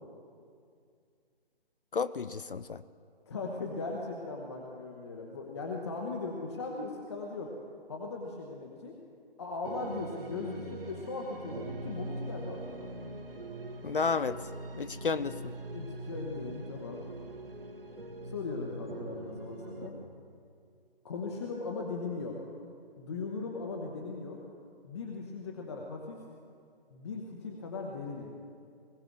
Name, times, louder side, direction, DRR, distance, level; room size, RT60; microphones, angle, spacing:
voice 1, 1.9-2.8 13.8-14.4 14.7-15.3, left 5 dB, 60° left, 14 dB, 0.5 m, -31 dB
voice 2, 3.3-7.5 7.9-9.0 9.4-12.9 15.7-17.0 18.2-20.0 21.0-22.4 23.0-24.4 24.8-26.2 26.9-28.3, left 3 dB, 25° left, 0 dB, 1.0 m, -38 dB
sound 1, 9.6-19.9, right 1 dB, 65° right, 1.5 m, -42 dB
20.5 x 16.0 x 3.6 m, 2.3 s
figure-of-eight pair, 145°, 31 cm